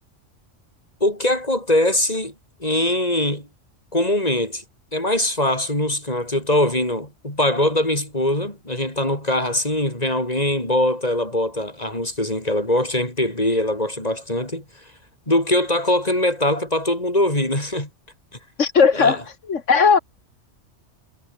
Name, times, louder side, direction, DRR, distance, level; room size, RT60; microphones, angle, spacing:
voice 1, 1.0-2.3 2.6-3.5 3.9-4.6 4.9-14.6 15.3-17.9 18.9-19.2, left 1 dB, 30° left, 7.2 m, -22 dB
voice 2, 18.6-19.2 19.5-20.0, left 5 dB, 75° left, 1.9 m, -16 dB
omnidirectional pair, 1.3 m